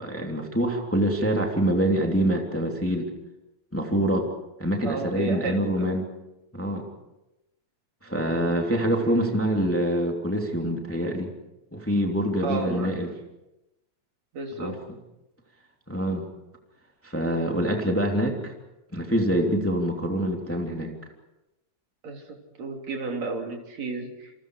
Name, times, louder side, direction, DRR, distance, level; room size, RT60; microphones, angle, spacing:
voice 1, 0.0-3.1 3.7-4.3 4.6-6.1 6.5-6.9 8.0-11.3 11.7-13.1 14.6-14.7 15.9-16.3 17.0-18.5 18.9-20.9, right 1 dB, 5° left, 1 dB, 2.7 m, -25 dB
voice 2, 4.8-5.9 9.0-9.2 12.4-13.0 14.3-14.8 22.0-24.3, right 3 dB, 60° right, 2 dB, 4.5 m, -33 dB
28.0 x 28.0 x 4.9 m, 0.96 s
omnidirectional pair, 3.4 m